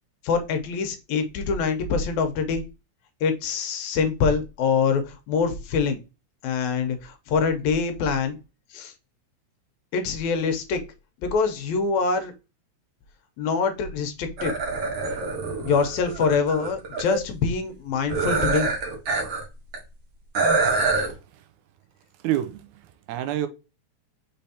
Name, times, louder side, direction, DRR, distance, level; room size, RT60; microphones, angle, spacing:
voice 1, 0.2-2.6 3.2-6.0 6.4-8.4 8.7-8.9 9.9-10.8 11.2-12.3 13.4-14.5 15.6-18.7, left 5 dB, 80° left, 2.0 m, -24 dB
sound 1, 14.4-17.2 18.1-19.4 19.7-19.8 20.3-21.1, right 3 dB, 60° right, 2.0 m, -25 dB
voice 2, 20.9-21.4 22.2-23.5, right 12 dB, 85° right, 2.0 m, -29 dB
5.4 x 3.4 x 2.7 m
omnidirectional pair, 3.4 m